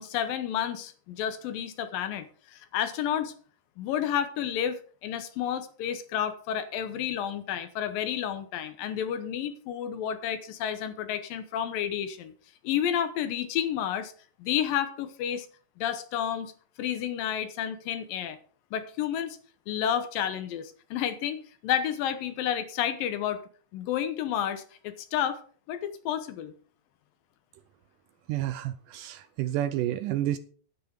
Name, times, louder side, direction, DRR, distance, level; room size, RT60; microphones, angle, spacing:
voice 1, 0.0-3.3 3.8-12.3 12.6-14.1 14.4-15.5 15.8-16.5 16.8-18.4 18.7-19.4 19.7-23.4 23.7-25.4 25.7-26.5, left 9 dB, 75° left, 10 dB, 2.7 m, -31 dB
voice 2, 28.3-30.4, right 13 dB, 80° right, 12 dB, 2.0 m, -30 dB
9.9 x 9.5 x 5.2 m, 0.43 s
omnidirectional pair, 4.2 m